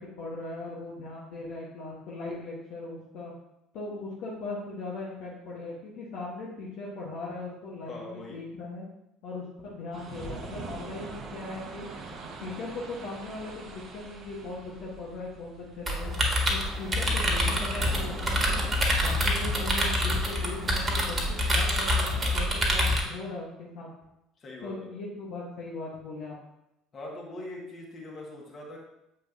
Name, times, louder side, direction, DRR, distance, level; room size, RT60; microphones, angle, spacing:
voice 1, 0.0-3.3 3.7-8.9 9.2-16.1 16.5-18.6 19.0-23.9 24.6-26.4, left 3 dB, 60° left, -5 dB, 1.3 m, -39 dB
voice 2, 7.8-8.4 20.9-21.3 24.4-24.9 26.9-28.8, left 1 dB, 35° left, -2 dB, 1.9 m, -42 dB
sound 1, 9.9-23.1, right 3 dB, 40° right, 1.0 m, -44 dB
sound 2, 15.9-23.0, equal, 25° right, 1.6 m, -26 dB
7.4 x 5.3 x 2.8 m, 0.86 s
figure-of-eight pair, 60°, 0 cm